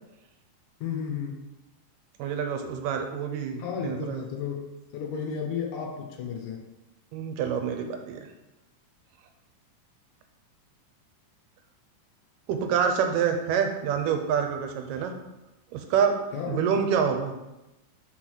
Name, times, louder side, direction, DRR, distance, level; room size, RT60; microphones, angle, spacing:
voice 1, 0.8-1.4 3.6-4.6 4.9-6.6 16.3-16.7, left 7 dB, 70° left, 2 dB, 2.2 m, -33 dB
voice 2, 2.2-4.2 7.1-8.2 12.5-15.1 15.7-16.2 16.5-17.3, right 7 dB, 85° right, 5 dB, 2.4 m, -27 dB
6.3 x 3.9 x 6.3 m, 0.97 s
omnidirectional pair, 3.7 m